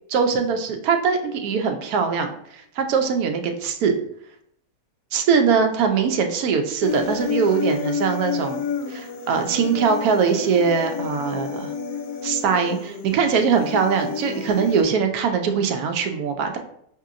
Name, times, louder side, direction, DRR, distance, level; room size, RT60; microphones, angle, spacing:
voice 1, 0.1-3.9 5.1-11.7 12.2-16.6, right 6 dB, 75° right, 5 dB, 1.0 m, -22 dB
Human voice, 6.8-14.8, left 6 dB, 65° left, 1.0 m, -30 dB
5.3 x 2.8 x 2.4 m, 0.70 s
omnidirectional pair, 1.7 m